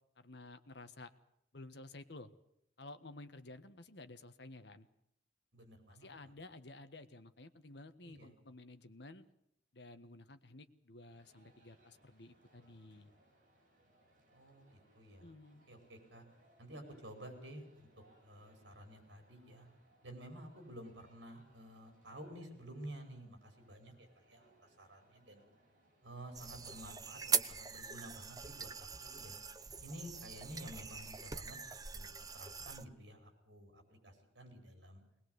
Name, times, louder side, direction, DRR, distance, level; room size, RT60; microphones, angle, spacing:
voice 1, 0.2-1.1 1.5-2.3 2.8-4.9 5.9-9.2 9.7-13.1 15.2-15.7, left 2 dB, 60° left, 9 dB, 1.5 m, -53 dB
voice 2, 5.5-6.3 8.0-8.3 14.3-15.3 15.7-16.3 16.6-17.9 18.2-19.7 20.0-25.4 26.0-29.4 29.8-35.0, right 1 dB, 65° right, 5 dB, 5.2 m, -52 dB
sound 1, 11.1-26.8, right 1 dB, 45° right, 8.0 m, -70 dB
sound 2, 26.3-32.8, right 6 dB, 20° right, 0.8 m, -41 dB
21.0 x 20.5 x 8.1 m, 0.77 s
head